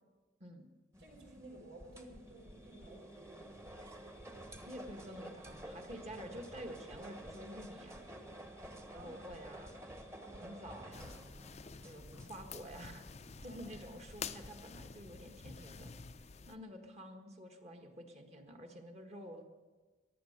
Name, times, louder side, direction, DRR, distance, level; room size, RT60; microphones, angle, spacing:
sound 1, 0.9-14.9, right 1 dB, 15° right, 1.2 m, -52 dB
voice 1, 1.0-3.5 8.9-9.4 10.2-10.7 13.4-13.8, right 1 dB, 75° right, 1 dB, 3.8 m, -55 dB
voice 2, 4.6-8.1 8.9-9.8 10.4-11.2 11.8-13.1 13.4-15.9 16.2-19.4, equal, 35° right, 4 dB, 1.6 m, -49 dB
sound 2, 10.9-16.6, left 6 dB, 40° left, 0.5 m, -49 dB
15.5 x 11.0 x 6.5 m, 1.3 s
head